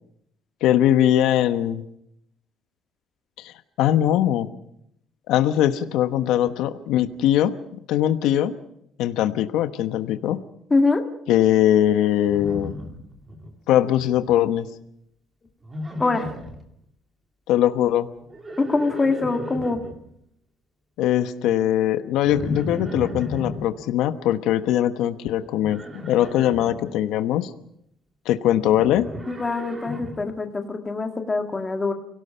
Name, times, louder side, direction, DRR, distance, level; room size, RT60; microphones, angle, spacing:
voice 1, 0.6-1.8 3.4-4.5 5.3-7.5 7.9-8.5 9.0-10.4 11.3-12.7 13.7-14.7 17.5-18.1 21.0-27.5 28.2-29.1, left 11 dB, 80° left, 10 dB, 1.1 m, -21 dB
voice 2, 10.7-11.1 16.0-16.3 18.6-19.8 29.3-31.9, left 3 dB, 15° left, 5 dB, 1.7 m, -23 dB
Livestock farm animals working animals, 12.3-13.5 13.8-14.3 15.6-16.6 18.2-19.9 22.2-23.6 25.6-26.7 28.5-30.2, left 1 dB, 15° right, 2.4 m, -34 dB
29.0 x 18.0 x 5.7 m, 0.73 s
cardioid pair, 175°, 0 cm